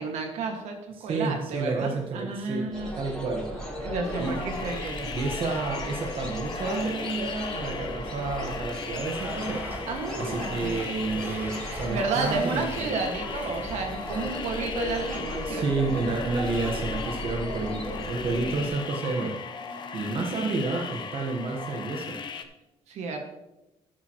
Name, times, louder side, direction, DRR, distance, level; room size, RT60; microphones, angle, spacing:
voice 1, 0.0-3.0 3.8-5.1 9.9-10.8 11.9-15.6 18.2-18.4 19.7-20.0 22.9-23.2, right 4 dB, 80° right, 3 dB, 1.8 m, -32 dB
voice 2, 1.0-2.7 3.0-3.5 4.2-4.3 5.0-9.9 10.2-12.9 15.4-22.1, right 3 dB, 50° right, 1 dB, 1.3 m, -30 dB
sound 1, 2.7-18.7, equal, 5° left, 3.4 m, -36 dB
sound 2, 4.1-22.4, left 6 dB, 40° left, 0.8 m, -38 dB
Domestic sounds home sounds, 9.1-12.9 13.3-14.2, right 1 dB, 15° right, 1.4 m, -42 dB
12.0 x 9.5 x 3.0 m, 0.94 s
cardioid pair, 145°, 11 cm